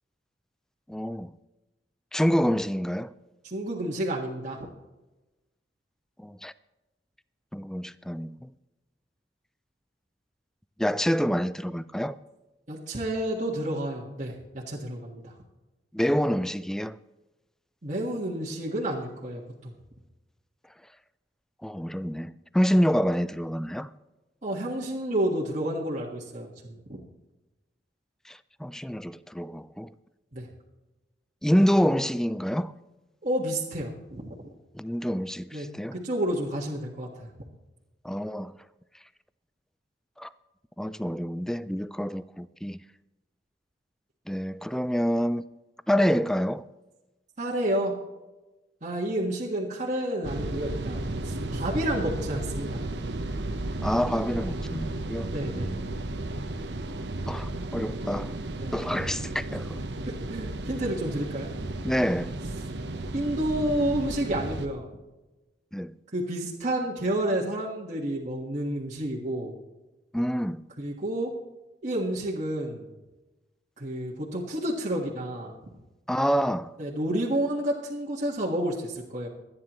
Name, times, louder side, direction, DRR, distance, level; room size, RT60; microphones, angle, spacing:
voice 1, 0.9-1.3 2.1-3.1 6.2-6.5 7.5-8.5 10.8-12.2 15.9-17.0 21.6-23.9 28.3-29.9 31.4-32.7 34.7-36.0 38.0-38.5 40.2-40.3 40.8-42.8 44.3-45.4 45.9-46.6 53.8-56.0 57.3-58.3 58.7-59.8 61.8-62.4 65.7-66.0 70.1-70.6 76.1-76.7, equal, 5° left, 0.3 m, -27 dB
voice 2, 3.4-4.6 12.7-15.3 17.8-19.7 24.4-27.0 30.3-30.5 33.2-34.3 35.5-35.7 35.9-37.3 47.4-47.9 48.8-52.8 55.3-55.7 58.6-58.7 60.3-61.5 63.1-64.8 66.1-69.5 70.8-71.3 71.8-72.9 73.8-75.6 76.8-79.3, right 1 dB, 45° right, 1.6 m, -30 dB
sound 1, 50.2-64.7, right 2 dB, 75° right, 1.0 m, -34 dB
25.5 x 9.6 x 3.1 m
head